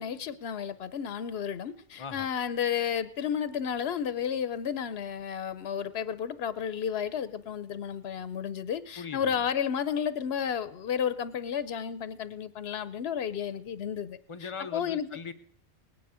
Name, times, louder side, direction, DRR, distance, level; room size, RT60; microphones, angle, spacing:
voice 1, 0.0-15.1, left 8 dB, 80° left, 1.0 m, -32 dB
voice 2, 9.0-9.4 14.3-15.3, left 5 dB, 35° left, 0.7 m, -40 dB
19.0 x 9.4 x 4.9 m
omnidirectional pair, 1.1 m